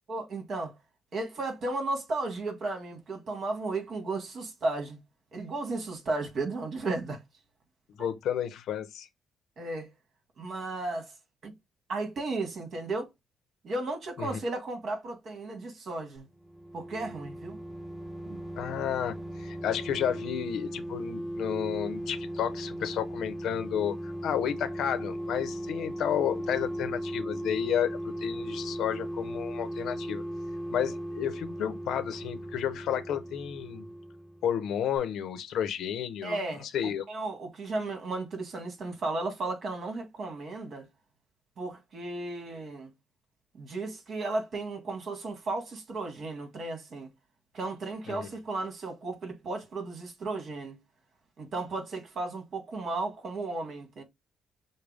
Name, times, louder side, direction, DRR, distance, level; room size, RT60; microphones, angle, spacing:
voice 1, 0.1-0.8 1.1-5.0 5.3-7.2 8.0-8.1 9.6-9.9 10.4-11.1 11.4-11.5 11.9-13.1 13.6-16.3 16.7-17.6 18.2-18.4 36.2-36.7 37.1-40.9 41.6-42.9 43.5-47.1 47.5-50.8 51.4-54.0, right 2 dB, 55° right, 1.9 m, -34 dB
voice 2, 8.0-9.1 14.2-14.4 18.6-30.2 30.7-33.8 34.4-36.4 36.7-37.0 48.1-48.3, left 9 dB, 80° left, 0.8 m, -31 dB
sound 1, 16.3-34.7 35.0-35.1, equal, 5° right, 1.1 m, -37 dB
6.5 x 2.2 x 3.4 m
cardioid pair, 90°, 0 cm